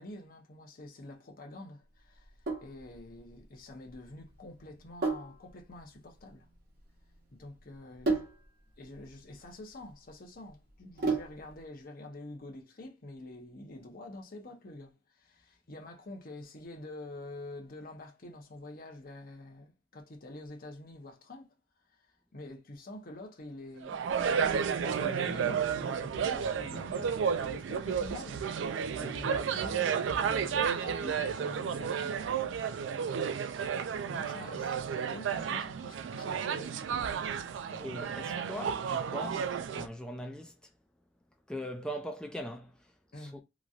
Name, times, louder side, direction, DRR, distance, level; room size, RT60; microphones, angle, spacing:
voice 1, 0.0-2.3 2.6-6.5 7.4-8.3 8.8-21.6 22.3-24.0 24.6-28.4 28.9-32.2 32.8-33.4 34.0-37.1 43.1-43.4, left 2 dB, 50° left, 0.8 m, -47 dB
Sink (filling or washing), 2.2-11.6, right 3 dB, 55° right, 0.9 m, -37 dB
sound 1, 23.8-39.9, right 7 dB, 90° right, 0.3 m, -32 dB
voice 2, 37.7-40.7 41.5-43.4, equal, 5° left, 0.4 m, -41 dB
3.0 x 2.6 x 2.4 m
head